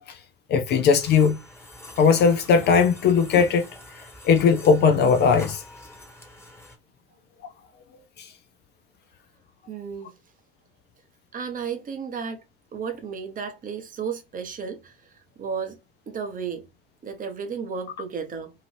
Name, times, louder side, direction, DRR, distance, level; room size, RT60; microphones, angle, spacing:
voice 1, 0.5-1.4 2.0-3.7 4.2-5.6 8.2-8.3, left 6 dB, 35° left, 0.4 m, -18 dB
sound 1, 0.7-6.8, left 1 dB, 10° left, 1.1 m, -45 dB
voice 2, 9.7-10.1 11.3-12.4 12.7-15.1 15.4-15.8 16.1-16.7 17.0-18.5, right 6 dB, 25° right, 0.8 m, -33 dB
2.8 x 2.4 x 3.2 m
figure-of-eight pair, 70°, 31 cm